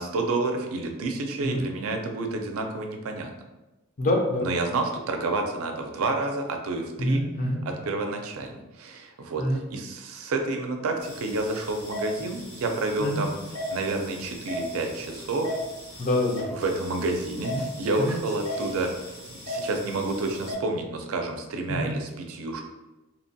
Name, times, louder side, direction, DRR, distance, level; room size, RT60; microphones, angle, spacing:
voice 1, 0.0-3.3 4.4-7.2 7.7-13.3 13.7-15.5 16.5-18.9 19.5-22.6, right 2 dB, 70° right, 4 dB, 0.4 m, -29 dB
voice 2, 4.0-4.5 7.0-7.6 9.4-9.6 13.0-13.2 16.0-16.5 17.5-17.6 18.0-18.1 21.7-21.9, left 1 dB, 40° left, 1 dB, 0.5 m, -26 dB
sound 1, 11.0-20.5, equal, 85° left, 1.1 m, -37 dB
2.9 x 2.2 x 2.6 m, 1.0 s
head